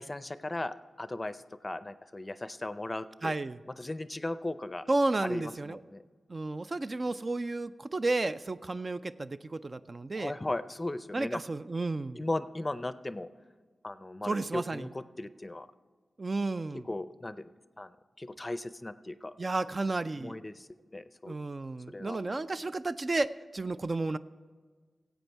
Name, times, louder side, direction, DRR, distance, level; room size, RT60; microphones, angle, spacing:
voice 1, 0.0-3.3 3.8-4.9 5.2-6.0 10.2-11.4 12.1-13.3 13.8-15.7 16.7-17.9 18.2-19.3 20.2-21.4 21.9-22.2, left 2 dB, 25° left, 14 dB, 0.5 m, -37 dB
voice 2, 3.2-3.6 4.9-5.8 6.3-10.3 11.1-12.2 14.2-14.9 16.2-16.9 19.4-20.4 21.3-24.2, right 2 dB, 40° right, 12 dB, 0.3 m, -32 dB
16.5 x 8.1 x 4.5 m, 1.5 s
cardioid pair, 60°, 0 cm